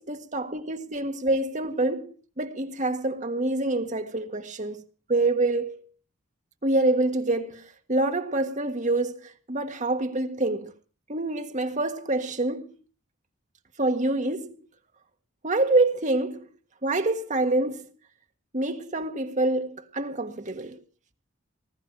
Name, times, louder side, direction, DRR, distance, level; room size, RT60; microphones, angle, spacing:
voice 1, 0.0-4.8 5.1-5.8 6.6-7.6 7.9-10.7 11.1-12.7 13.8-14.6 15.4-16.5 16.8-17.9 18.5-20.8, right 2 dB, 35° right, 1.7 m, -26 dB
20.0 x 13.0 x 4.7 m
head